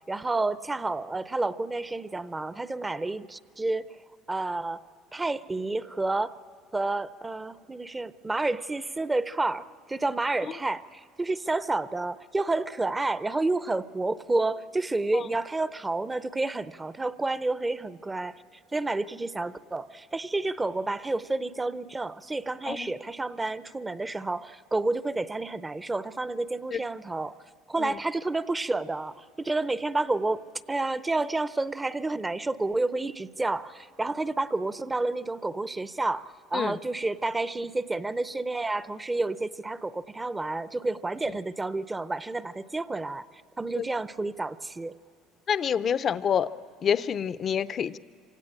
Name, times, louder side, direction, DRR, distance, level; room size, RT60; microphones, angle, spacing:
voice 1, 0.1-3.9 4.3-4.8 5.1-6.3 6.7-18.4 18.7-27.3 27.7-30.4 30.7-43.2 43.6-45.0, right 2 dB, 15° right, 15 dB, 0.5 m, -30 dB
voice 2, 22.7-23.0 26.7-26.8 27.8-28.0 36.5-36.8 43.8-43.9 45.5-46.5 46.8-48.0, left 8 dB, 40° left, 15 dB, 0.5 m, -27 dB
26.0 x 17.5 x 8.7 m, 2.6 s
cardioid pair, 115°, 0 cm